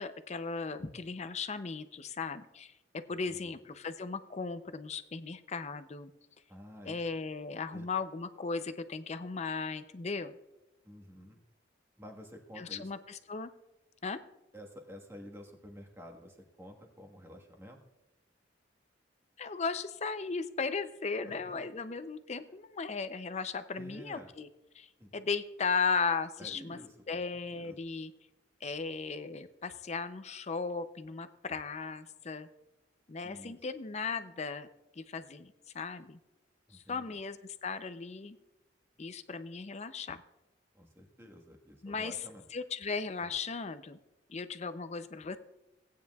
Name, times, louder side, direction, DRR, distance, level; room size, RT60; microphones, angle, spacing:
voice 1, 0.0-6.1 6.9-10.4 12.6-13.5 14.0-14.2 19.4-24.5 24.7-26.8 27.1-28.1 28.6-32.5 33.1-34.7 35.0-36.2 36.7-38.4 39.0-40.2 41.8-42.2 42.5-44.0 44.3-45.4, left 4 dB, 35° left, 11 dB, 0.5 m, -36 dB
voice 2, 6.5-7.0 7.7-7.9 10.8-11.4 12.0-12.9 14.5-17.8 21.2-21.4 23.7-24.3 25.0-25.1 26.4-27.2 27.5-27.8 33.2-33.6 36.7-37.1 40.7-42.4 43.2-43.3, equal, 15° right, 2 dB, 1.4 m, -50 dB
18.0 x 9.3 x 2.3 m, 0.97 s
head